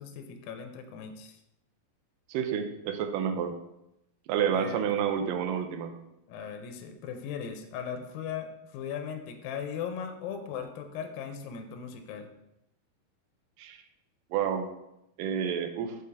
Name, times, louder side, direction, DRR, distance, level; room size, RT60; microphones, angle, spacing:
voice 1, 0.0-1.4 4.5-5.1 6.3-12.3, left 7 dB, 80° left, 6 dB, 2.3 m, -38 dB
voice 2, 2.3-3.5 4.3-5.9 13.6-13.8 14.3-14.7 15.2-16.0, right 8 dB, 80° right, 6 dB, 2.0 m, -29 dB
5.4 x 5.1 x 3.4 m, 0.87 s
omnidirectional pair, 4.3 m